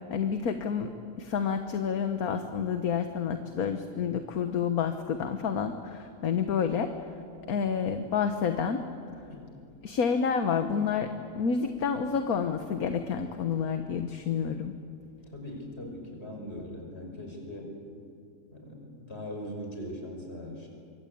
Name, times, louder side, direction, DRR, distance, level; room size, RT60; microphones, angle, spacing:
voice 1, 0.1-6.9 7.5-8.8 9.8-11.1 11.3-14.7, left 6 dB, 60° left, 7 dB, 1.5 m, -29 dB
voice 2, 15.3-17.7 18.5-20.7, left 1 dB, 40° left, 1 dB, 5.8 m, -40 dB
25.5 x 24.0 x 8.6 m, 2.5 s
omnidirectional pair, 1.8 m